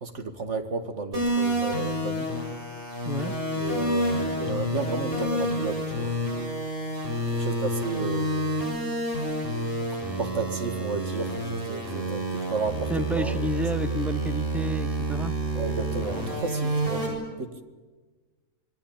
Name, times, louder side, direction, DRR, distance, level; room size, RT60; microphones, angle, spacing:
voice 1, 0.0-2.3 3.5-6.1 7.3-8.7 9.9-13.5 15.5-17.6, right 3 dB, 60° right, 7 dB, 2.3 m, -33 dB
sound 1, 1.1-17.1, right 1 dB, 45° right, 7.9 m, -29 dB
voice 2, 12.9-15.3, right 1 dB, ahead, 12 dB, 0.7 m, -30 dB
26.5 x 22.5 x 8.9 m, 1.3 s
omnidirectional pair, 1.4 m